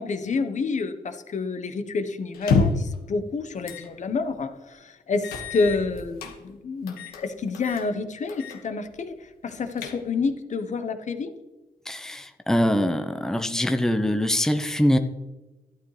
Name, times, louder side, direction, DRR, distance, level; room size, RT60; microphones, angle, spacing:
voice 1, 0.0-11.3, left 4 dB, 55° left, 8 dB, 1.1 m, -29 dB
sound 1, 2.3-3.0 3.7-3.9 4.3-4.4 5.2-6.3 6.9-7.2 7.5-7.9 8.3-8.6 8.9-9.0 9.5-10.3, left 4 dB, 90° left, 1.4 m, -27 dB
voice 2, 11.9-15.0, equal, 5° left, 7 dB, 0.9 m, -23 dB
12.0 x 9.0 x 3.3 m, 1.1 s
supercardioid pair, 60°, 15 cm